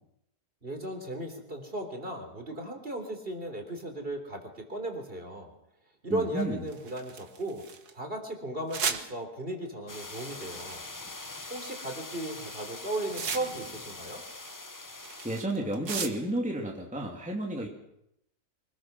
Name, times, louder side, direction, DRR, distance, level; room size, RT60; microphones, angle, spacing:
voice 1, 0.6-5.5 6.0-7.6 7.9-10.9 11.5-14.2, right 1 dB, 35° right, 4 dB, 3.9 m, -36 dB
voice 2, 6.1-6.6 15.2-17.7, right 1 dB, 5° right, 0 dB, 2.5 m, -32 dB
sound 1, 6.4-7.9 8.7-9.0 10.1-10.9 11.7-12.0 12.3-13.8 14.1-16.4, right 6 dB, 70° right, 2.1 m, -36 dB
sound 2, 9.9-15.4, left 2 dB, 20° left, 0.5 m, -43 dB
25.0 x 20.5 x 6.1 m, 0.80 s
omnidirectional pair, 1.7 m